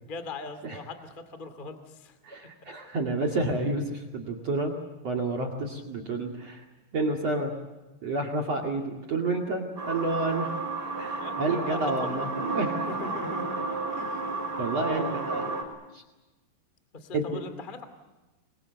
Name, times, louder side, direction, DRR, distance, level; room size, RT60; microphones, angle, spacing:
voice 1, 0.0-2.2 2.7-2.8 11.2-11.4 11.7-13.6 13.9-15.3 16.9-17.8, left 2 dB, 40° left, 9 dB, 0.6 m, -40 dB
voice 2, 2.2-4.7 5.0-6.7 6.9-7.6 8.0-10.5 11.0-12.7 14.6-15.5 15.9-16.0 17.1-17.4, right 2 dB, 45° right, 5 dB, 2.6 m, -29 dB
sound 1, 9.8-15.6, right 3 dB, 20° right, 4.3 m, -32 dB
27.5 x 22.0 x 7.9 m, 1.1 s
omnidirectional pair, 5.4 m